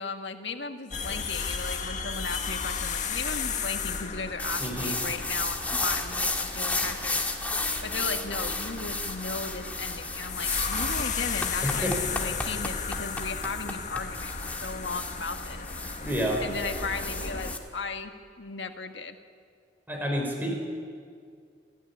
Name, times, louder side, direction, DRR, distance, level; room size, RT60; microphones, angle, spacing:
voice 1, 0.0-7.2 7.8-14.3 14.6-15.7 16.4-18.1 18.4-19.2, left 4 dB, 75° left, 5 dB, 1.7 m, -36 dB
sound 1, 0.9-17.6, left 5 dB, 45° left, 1.6 m, -34 dB
sound 2, 4.4-17.6, left 2 dB, 10° left, 1.8 m, -33 dB
voice 2, 4.6-4.9 11.6-12.0 16.0-16.4 19.9-20.6, equal, 10° right, 0 dB, 5.5 m, -29 dB
28.0 x 14.0 x 10.0 m, 2.2 s
head